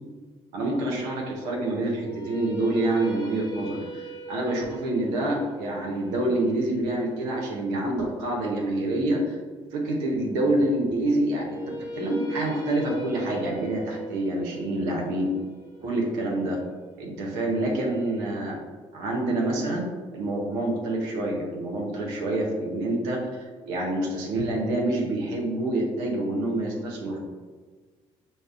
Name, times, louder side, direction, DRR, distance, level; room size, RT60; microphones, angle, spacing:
voice 1, 0.5-9.4 9.7-15.3 15.8-16.6 17.0-18.6 18.9-27.2, right 1 dB, 85° right, -2 dB, 0.6 m, -27 dB
sound 1, 1.9-8.0 11.3-17.3, right 2 dB, 25° left, 0.8 m, -40 dB
5.1 x 2.0 x 2.4 m, 1.5 s
hypercardioid pair, 60°, 14 cm